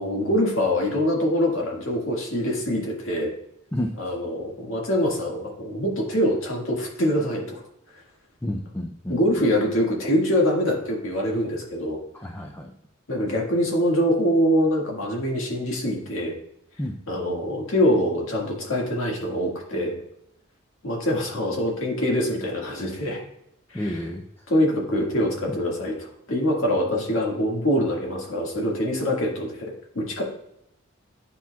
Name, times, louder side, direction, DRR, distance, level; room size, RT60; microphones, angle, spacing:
voice 1, 0.0-3.3 4.0-7.6 9.1-12.0 13.1-16.3 17.1-20.0 20.8-23.2 23.7-24.0 24.5-30.2, equal, 70° left, -1 dB, 1.9 m, -24 dB
voice 2, 8.4-9.2 12.1-12.7 16.8-17.0 23.7-24.2 25.5-25.6, left 1 dB, 10° left, 3 dB, 0.4 m, -30 dB
9.5 x 5.8 x 2.3 m, 0.79 s
head